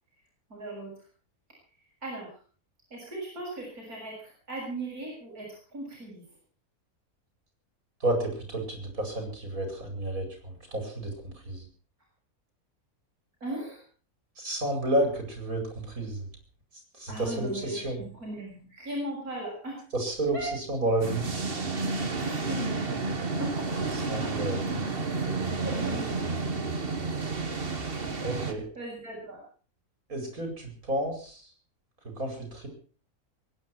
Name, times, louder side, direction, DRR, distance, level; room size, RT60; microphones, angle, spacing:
voice 1, 0.5-0.9 2.0-2.3 2.9-6.2 13.4-13.8 17.1-19.8 20.3-20.5 22.1-22.9 23.4-24.4 24.7-24.8 25.6-26.7 28.8-29.4, right 1 dB, 85° right, -3 dB, 7.3 m, -38 dB
voice 2, 8.0-11.6 14.4-16.2 16.9-18.0 19.9-21.3 24.1-24.6 28.2-28.7 30.1-31.5 32.2-32.7, right 1 dB, 70° right, 4 dB, 5.6 m, -31 dB
sound 1, 21.0-28.5, right 3 dB, 40° right, 1.9 m, -31 dB
23.0 x 10.0 x 6.1 m, 0.41 s
omnidirectional pair, 1.5 m